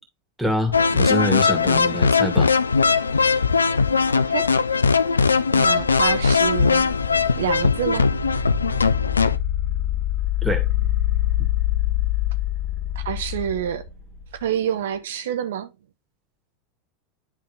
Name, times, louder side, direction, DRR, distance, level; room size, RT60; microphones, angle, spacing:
voice 1, 0.4-2.5 10.4-10.7, equal, ahead, 2.1 m, -25 dB
sound 1, 0.7-9.4, left 5 dB, 75° left, 0.3 m, -19 dB
sound 2, 0.7-1.2 3.2-3.8 5.7-6.3 8.3-8.9 10.8-11.4 13.3-13.9, right 9 dB, 35° right, 1.9 m, -42 dB
voice 2, 4.1-4.5 5.5-6.9 7.4-8.1 13.0-13.8 14.4-15.7, right 10 dB, 60° right, 0.5 m, -27 dB
sound 3, 5.8-14.6, left 12 dB, 40° left, 1.9 m, -26 dB
10.5 x 3.6 x 3.3 m
figure-of-eight pair, 85°, 0 cm